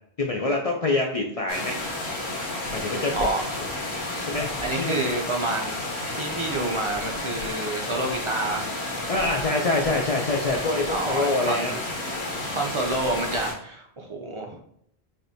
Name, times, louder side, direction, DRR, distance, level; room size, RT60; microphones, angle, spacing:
voice 1, 0.2-1.8 2.7-3.3 3.6-3.7 4.3-4.5 4.8-5.0 9.1-11.8, left 2 dB, 55° left, 0 dB, 0.4 m, -25 dB
sound 1, 1.5-13.5, left 2 dB, 75° left, 1.3 m, -31 dB
voice 2, 4.6-5.8 6.1-8.7 10.9-11.8 12.5-14.6, right 2 dB, 45° right, 1 dB, 0.4 m, -29 dB
5.0 x 2.6 x 2.7 m, 0.69 s
omnidirectional pair, 1.1 m